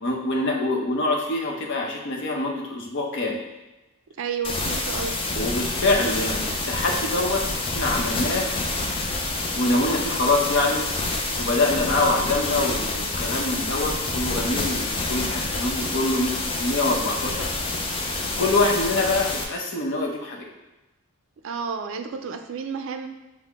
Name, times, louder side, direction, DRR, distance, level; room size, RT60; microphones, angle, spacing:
voice 1, 0.0-3.4 5.3-7.4 7.7-8.5 9.5-10.9 11.4-16.3 16.6-17.5 18.4-20.5, left 2 dB, 55° left, -1 dB, 0.7 m, -25 dB
voice 2, 4.2-5.2 21.4-23.1, right 5 dB, 60° right, 7 dB, 0.4 m, -31 dB
sound 1, 4.4-19.4, left 2 dB, 25° left, 0.4 m, -28 dB
5.5 x 2.1 x 3.5 m, 1.1 s
head